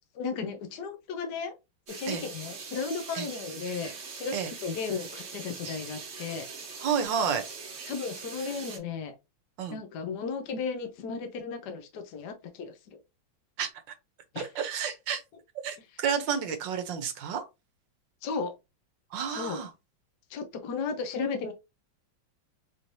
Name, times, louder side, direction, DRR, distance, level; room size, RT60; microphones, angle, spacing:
voice 1, 0.2-1.5 2.0-4.3 4.6-6.5 7.9-9.1 9.7-12.8 14.3-14.5 18.2-18.5 19.3-19.6 20.3-21.5, left 5 dB, 65° left, 1.1 m, -34 dB
sound 1, 1.9-8.8, right 5 dB, 50° right, 1.0 m, -42 dB
voice 2, 6.8-7.5 9.6-9.8 13.6-13.7 14.4-15.2 15.6-17.4 19.1-19.7, right 7 dB, 70° right, 1.4 m, -30 dB
4.4 x 3.1 x 2.6 m
omnidirectional pair, 2.2 m